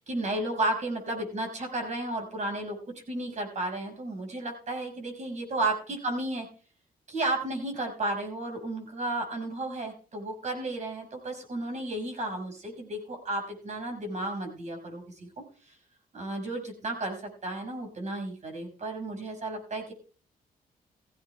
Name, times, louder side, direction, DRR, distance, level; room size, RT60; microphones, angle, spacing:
voice 1, 0.0-2.8 3.1-6.5 7.1-15.3 15.6-15.8 16.1-19.9, right 2 dB, 50° right, 2 dB, 5.5 m, -33 dB
16.5 x 15.5 x 2.3 m, 0.40 s
cardioid pair, 80°, 16 cm